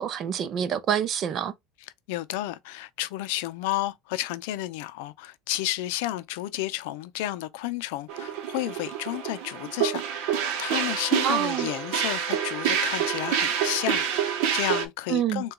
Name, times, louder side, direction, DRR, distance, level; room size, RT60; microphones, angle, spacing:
voice 1, 0.0-1.5 11.2-11.7 15.1-15.4, right 9 dB, 40° right, 0.5 m, -26 dB
voice 2, 2.1-15.5, left 15 dB, 75° left, 0.4 m, -32 dB
sound 1, 8.1-14.9, right 8 dB, 70° right, 0.8 m, -27 dB
3.8 x 2.3 x 3.6 m
supercardioid pair, 125°, 0 cm